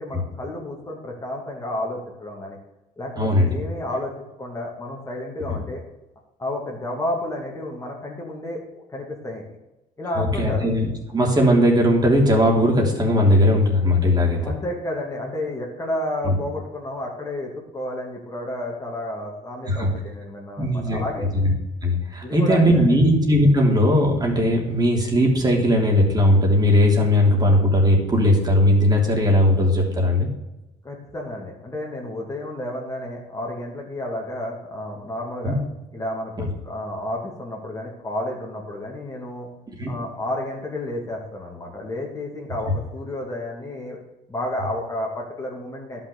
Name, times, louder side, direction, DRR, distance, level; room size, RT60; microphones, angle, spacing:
voice 1, 0.0-2.6 3.0-4.1 4.4-5.8 6.4-9.6 10.0-10.7 14.3-21.3 22.2-22.9 30.8-35.6 35.9-39.5 39.9-44.0 44.3-46.0, left 1 dB, 20° left, -1 dB, 2.5 m, -31 dB
voice 2, 3.2-3.5 5.5-5.6 10.2-14.5 16.2-16.3 19.7-19.9 20.6-21.0 21.3-21.5 21.8-30.3 35.4-35.6 39.8-39.9, left 1 dB, 25° right, 0 dB, 3.3 m, -18 dB
11.5 x 6.0 x 6.8 m, 0.98 s
cardioid pair, 110°, 17 cm